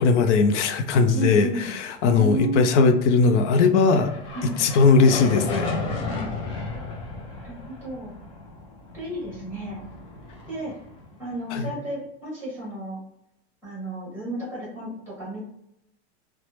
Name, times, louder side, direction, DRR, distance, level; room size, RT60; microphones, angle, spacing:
voice 1, 0.0-4.1 4.4-5.7 11.5-11.6, left 4 dB, 90° left, 7 dB, 0.5 m, -19 dB
voice 2, 1.1-1.7 2.0-2.6 4.3-4.6 6.0-6.3 7.4-8.1 8.9-9.9 10.5-10.7 11.2-13.0 13.6-15.4, right 1 dB, 5° right, -6 dB, 1.2 m, -32 dB
sound 1, 3.2-11.6, left 3 dB, 30° left, 0.4 m, -34 dB
3.1 x 2.1 x 3.0 m, 0.77 s
supercardioid pair, 180°, 34 cm